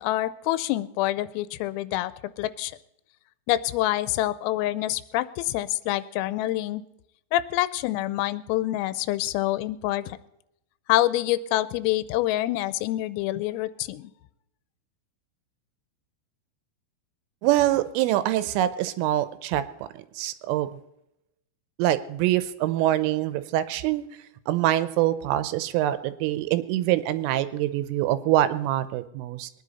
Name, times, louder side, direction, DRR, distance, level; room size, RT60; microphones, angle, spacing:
voice 1, 0.0-2.1 2.4-2.7 3.5-6.8 7.3-10.2 10.9-14.1, left 15 dB, 90° left, 16 dB, 3.3 m, -26 dB
voice 2, 17.4-19.6 20.2-20.7 21.8-24.1 24.5-29.5, right 14 dB, 80° right, 13 dB, 3.2 m, -24 dB
22.0 x 10.0 x 4.1 m, 0.83 s
omnidirectional pair, 5.9 m